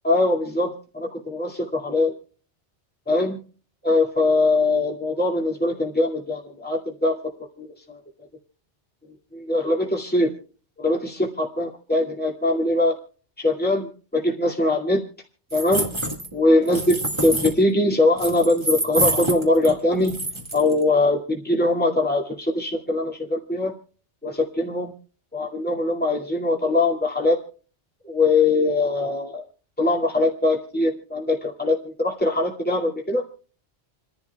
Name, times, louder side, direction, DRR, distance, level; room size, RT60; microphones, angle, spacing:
voice 1, 0.0-2.1 3.1-3.4 3.8-7.1 7.6-8.0 9.3-10.3 10.8-13.0 13.4-15.0 15.5-15.9 16.3-20.1 20.5-23.7 24.2-24.9 25.3-27.4 28.0-29.4 29.8-33.2, left 2 dB, 10° left, -1 dB, 2.2 m, -22 dB
sound 1, 15.5-16.3 16.7-17.5 18.2-19.7 20.0-20.7, right 1 dB, 25° right, 1.8 m, -26 dB
28.5 x 11.5 x 2.3 m, 0.39 s
omnidirectional pair, 1.2 m